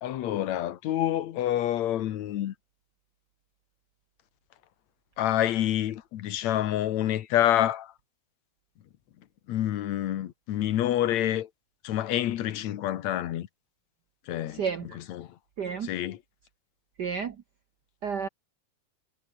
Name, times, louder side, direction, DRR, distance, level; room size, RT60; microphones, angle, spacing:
voice 1, 0.0-2.5 5.2-7.9 9.5-11.5 11.8-13.5 14.3-14.6 14.9-15.4 15.8-16.2, left 12 dB, 70° left, 2.4 m, -27 dB
voice 2, 14.5-15.0 15.6-15.9 17.0-17.4 18.0-18.3, right 6 dB, 75° right, 0.9 m, -31 dB
omnidirectional pair, 3.4 m